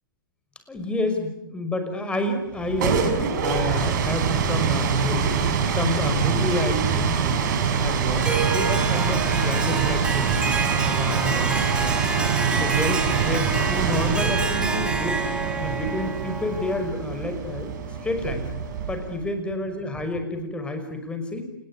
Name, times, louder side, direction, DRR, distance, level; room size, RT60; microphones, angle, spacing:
voice 1, 0.7-3.0 3.4-5.4 5.7-7.4 7.8-10.4 10.8-12.1 12.6-15.2 15.6-17.7 18.0-18.4 18.9-21.5, left 2 dB, 10° left, 7 dB, 5.8 m, -29 dB
sound 1, 2.5-19.2, right 7 dB, 55° right, 5.8 m, -25 dB
Harp, 8.2-16.9, right 3 dB, 10° right, 3.6 m, -28 dB
29.0 x 20.5 x 9.9 m, 0.81 s
hypercardioid pair, 120°, 12 cm